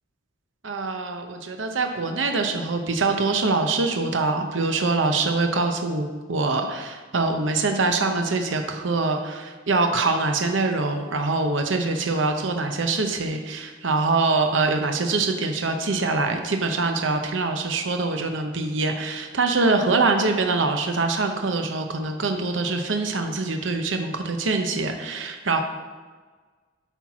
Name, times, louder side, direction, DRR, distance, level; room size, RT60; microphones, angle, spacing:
voice 1, 0.6-25.6, right 3 dB, 65° right, 5 dB, 0.7 m, -24 dB
8.0 x 4.5 x 5.9 m, 1.4 s
head